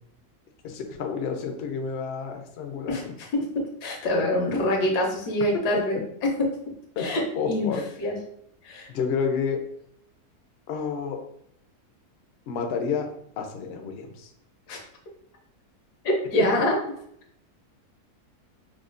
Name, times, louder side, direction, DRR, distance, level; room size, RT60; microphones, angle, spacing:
voice 1, 0.6-3.1 7.0-7.1 7.4-7.8 8.9-9.6 10.7-11.2 12.5-13.1 13.4-14.3, left 6 dB, 75° left, 3 dB, 0.5 m, -29 dB
voice 2, 2.9-6.0 6.2-6.3 7.0-8.2 8.6-8.9 14.7-14.8 16.0-16.8, left 1 dB, 90° left, 1 dB, 1.4 m, -25 dB
4.8 x 2.1 x 2.4 m, 0.70 s
omnidirectional pair, 1.7 m